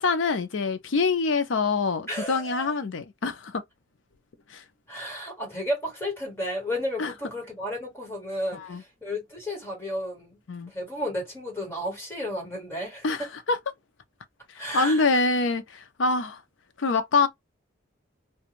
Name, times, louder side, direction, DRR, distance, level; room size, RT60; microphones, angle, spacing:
voice 1, 0.0-3.6 4.5-4.6 7.0-7.1 8.5-8.8 10.5-10.7 13.0-13.6 14.6-16.4 16.8-17.3, left 3 dB, 80° left, 0.6 m, -25 dB
voice 2, 2.1-2.7 4.9-10.4 10.7-13.0 14.6-15.2, equal, 15° left, 1.6 m, -33 dB
2.5 x 2.2 x 2.9 m
head